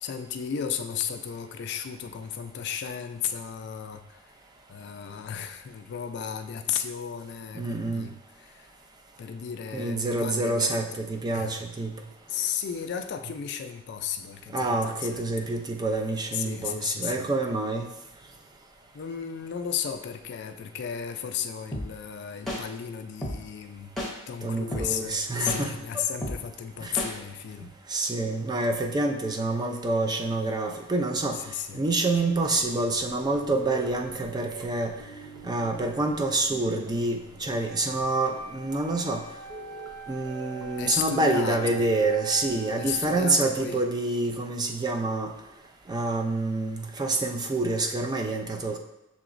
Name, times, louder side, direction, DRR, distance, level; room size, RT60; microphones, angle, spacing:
voice 1, 0.0-4.4 4.7-8.7 9.2-11.0 11.3-11.6 12.3-15.5 16.3-17.3 18.9-23.9 24.3-27.7 31.3-31.8 40.8-41.9 42.8-43.8, left 8 dB, 55° left, 7 dB, 0.3 m, -34 dB
voice 2, 7.5-8.1 9.7-11.9 14.5-17.9 24.4-26.0 26.8-27.0 27.9-31.4 31.7-34.9 35.4-39.2 40.1-45.3 45.9-48.8, right 2 dB, 20° right, 4 dB, 0.3 m, -27 dB
sound 1, 21.7-21.8 22.5-22.6 23.2-23.3 24.0-24.1 24.7-24.8 25.5-25.6 26.2-26.3 27.0-27.1, left 1 dB, ahead, 0.8 m, -30 dB
sound 2, 32.5-43.2 43.5-43.6, right 2 dB, 85° right, 0.8 m, -46 dB
Wind instrument woodwind instrument, 37.5-43.4, right 5 dB, 35° right, 0.8 m, -44 dB
6.8 x 2.9 x 2.5 m, 0.97 s
head